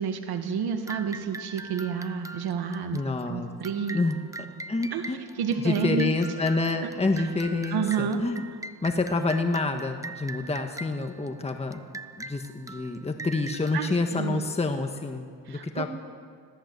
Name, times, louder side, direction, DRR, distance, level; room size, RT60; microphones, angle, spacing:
voice 1, 0.0-3.0 3.3-4.0 4.9-6.1 6.8-6.9 7.2-7.3 7.7-8.2 13.7-14.4 15.5-15.9, right 6 dB, 75° right, 6 dB, 2.0 m, -30 dB
sound 1, 0.9-15.0, right 3 dB, 10° right, 0.7 m, -42 dB
voice 2, 2.9-3.5 3.9-4.2 4.7-5.2 5.6-8.4 8.8-11.8 12.2-15.9, left 3 dB, 15° left, 4 dB, 1.5 m, -28 dB
25.5 x 17.5 x 8.1 m, 2.2 s
cardioid pair, 105°, 38 cm